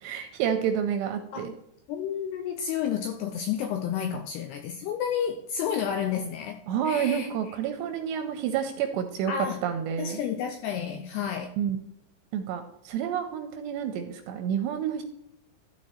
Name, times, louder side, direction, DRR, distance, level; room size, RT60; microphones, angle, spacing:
voice 1, 0.0-1.5 6.7-9.3 9.6-10.2 11.6-11.8 12.3-15.0, right 8 dB, 85° right, 6 dB, 2.6 m, -29 dB
voice 2, 1.9-7.3 9.3-9.6 10.0-11.6, left 8 dB, 80° left, 5 dB, 2.4 m, -31 dB
13.0 x 4.8 x 4.3 m, 0.81 s
omnidirectional pair, 5.5 m